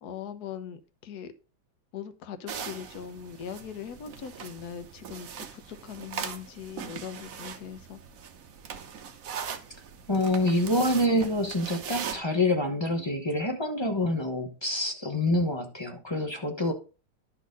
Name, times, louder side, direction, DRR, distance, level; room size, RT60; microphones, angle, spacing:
voice 1, 0.0-1.3 1.9-8.0, left 8 dB, 55° left, 1.3 m, -40 dB
sound 1, 2.5-12.2, right 7 dB, 55° right, 1.1 m, -40 dB
voice 2, 10.1-16.7, left 1 dB, 25° left, 0.6 m, -26 dB
11.0 x 4.2 x 5.2 m
omnidirectional pair, 2.2 m